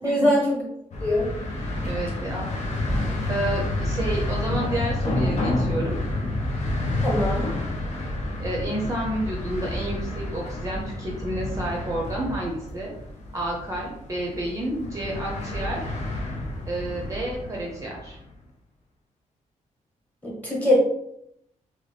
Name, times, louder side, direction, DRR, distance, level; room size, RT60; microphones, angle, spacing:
voice 1, 0.0-0.6 1.0-1.3 7.0-7.5 20.2-20.8, left 1 dB, 10° left, -4 dB, 1.1 m, -22 dB
sound 1, 0.9-18.2, left 1 dB, 55° left, 0.7 m, -29 dB
voice 2, 1.9-2.5 3.3-6.0 8.4-12.9 13.3-15.8 16.7-18.2, right 1 dB, 25° right, -2 dB, 0.6 m, -30 dB
2.9 x 2.9 x 3.3 m, 0.75 s
wide cardioid pair, 150°, 14 cm